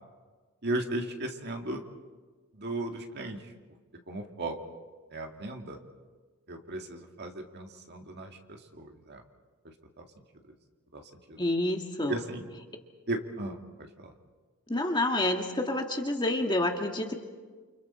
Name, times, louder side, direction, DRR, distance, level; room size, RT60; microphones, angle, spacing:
voice 1, 0.6-1.8 2.5-3.5 4.1-4.6 5.1-5.8 6.5-9.2 9.6-10.1 10.9-11.4 12.1-12.5 13.1-14.1, right 2 dB, 50° right, 3 dB, 2.1 m, -36 dB
voice 2, 11.4-12.1 14.7-17.1, left 1 dB, 20° left, 3 dB, 1.9 m, -28 dB
29.0 x 29.0 x 4.4 m, 1.4 s
head